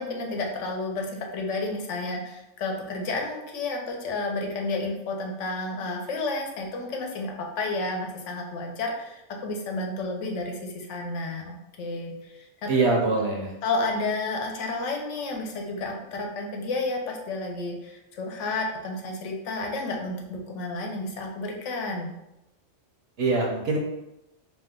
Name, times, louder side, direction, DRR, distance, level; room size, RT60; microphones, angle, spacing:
voice 1, 0.0-12.7 13.6-22.1, left 2 dB, 85° left, 1 dB, 1.0 m, -31 dB
voice 2, 12.7-13.5 23.2-23.8, right 3 dB, 65° right, 0 dB, 0.8 m, -23 dB
2.8 x 2.2 x 3.5 m, 0.89 s
omnidirectional pair, 1.2 m